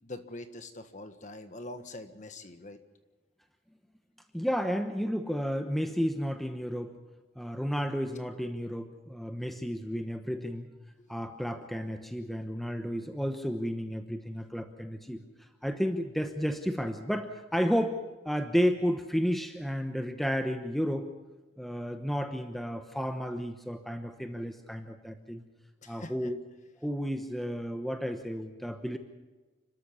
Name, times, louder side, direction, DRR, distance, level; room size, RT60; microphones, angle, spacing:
voice 1, 0.0-2.8 11.0-11.1 25.8-26.3, left 2 dB, 35° left, 8 dB, 1.6 m, -44 dB
voice 2, 4.3-6.9 7.4-10.7 11.1-15.2 15.6-18.0 18.2-21.1 21.6-25.4 25.9-26.4 26.8-29.0, equal, ahead, 6 dB, 1.0 m, -32 dB
29.5 x 13.5 x 7.2 m, 1.2 s
head